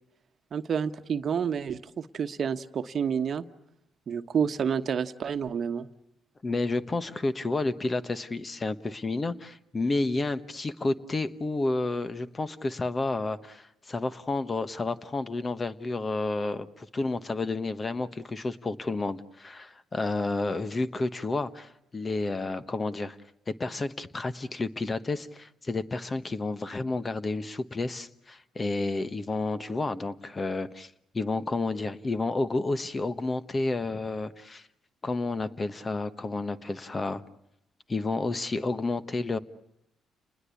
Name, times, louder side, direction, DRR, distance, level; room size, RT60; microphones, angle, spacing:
voice 1, 0.5-3.4 4.1-5.9, right 7 dB, 50° right, 9 dB, 1.2 m, -29 dB
voice 2, 6.4-23.2 23.5-34.7 35.0-37.2 37.9-39.4, left 3 dB, 30° left, 13 dB, 1.2 m, -30 dB
30.0 x 20.5 x 8.4 m, 0.83 s
cardioid pair, 90°, 0 cm